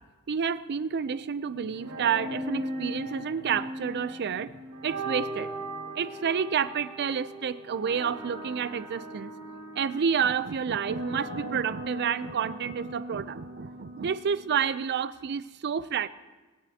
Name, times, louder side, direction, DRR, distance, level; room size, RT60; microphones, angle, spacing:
voice 1, 0.3-4.5 4.8-5.5 5.9-9.3 9.8-16.1, right 7 dB, 50° right, 15 dB, 0.4 m, -29 dB
sound 1, 1.7-14.7, right 1 dB, 85° right, 1.7 m, -38 dB
23.0 x 9.8 x 2.8 m, 1.2 s
head